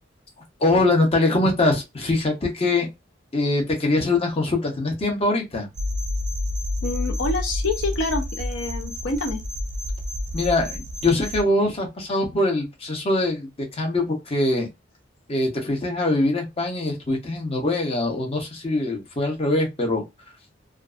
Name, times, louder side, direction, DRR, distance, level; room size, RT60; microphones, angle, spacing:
voice 1, 0.6-2.9 3.3-5.7 10.3-14.7 15.3-20.0, left 2 dB, 35° left, 0.8 m, -23 dB
sound 1, 5.7-11.4, left 1 dB, 40° right, 0.5 m, -29 dB
voice 2, 6.8-9.4, left 2 dB, 80° left, 0.5 m, -27 dB
2.5 x 2.3 x 2.4 m
head